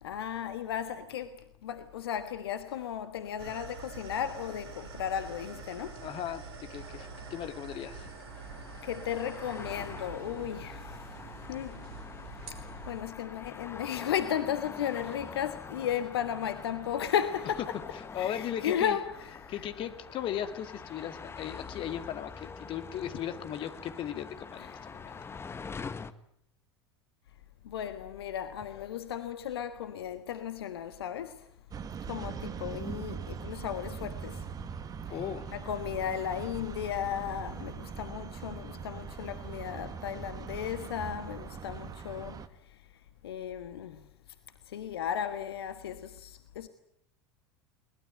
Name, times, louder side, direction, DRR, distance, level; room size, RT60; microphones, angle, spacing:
voice 1, 0.0-6.0 8.8-11.0 11.5-11.8 12.9-17.8 18.2-19.1 19.4-19.5 24.6-24.8 25.0-25.3 27.6-31.5 32.1-34.4 35.5-42.4 42.7-42.8 43.2-44.0 44.7-46.7, left 9 dB, 65° left, 1.4 m, -35 dB
sound 1, 3.4-13.0, right 4 dB, 65° right, 3.8 m, -46 dB
voice 2, 6.0-8.1 18.1-19.0 19.5-25.1 35.1-35.5, left 10 dB, 40° left, 2.3 m, -37 dB
sound 2, 6.8-26.1, left 5 dB, 20° left, 1.4 m, -45 dB
sound 3, 31.7-42.5, right 7 dB, 25° right, 1.8 m, -41 dB
22.5 x 20.5 x 9.1 m
figure-of-eight pair, 80°, 14 cm